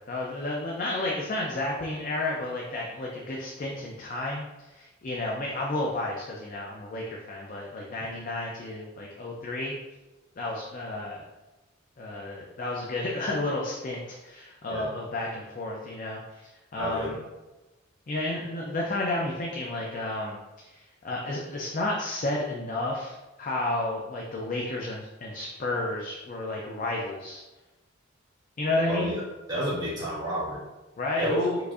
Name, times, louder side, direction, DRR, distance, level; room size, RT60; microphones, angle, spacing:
voice 1, 0.1-9.7 10.4-11.3 12.0-16.4 16.7-17.2 18.1-27.4 28.6-29.1 31.0-31.6, left 2 dB, 40° left, -2 dB, 0.4 m, -31 dB
voice 2, 16.8-17.1 28.9-29.1 29.5-30.6 31.2-31.5, equal, 20° right, -9 dB, 1.5 m, -30 dB
4.7 x 2.5 x 2.4 m, 1.1 s
head